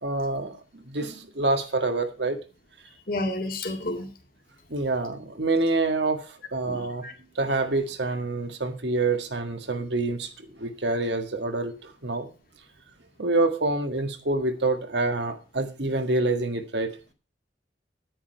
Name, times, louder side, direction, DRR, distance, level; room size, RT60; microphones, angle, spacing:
voice 1, 0.0-2.4 4.7-7.0 7.4-10.3 10.6-12.3 13.2-16.9, right 2 dB, 70° right, 6 dB, 1.8 m, -27 dB
voice 2, 3.1-4.1 6.6-7.1, left 1 dB, 50° left, 3 dB, 2.1 m, -31 dB
10.0 x 10.0 x 4.6 m, 0.33 s
head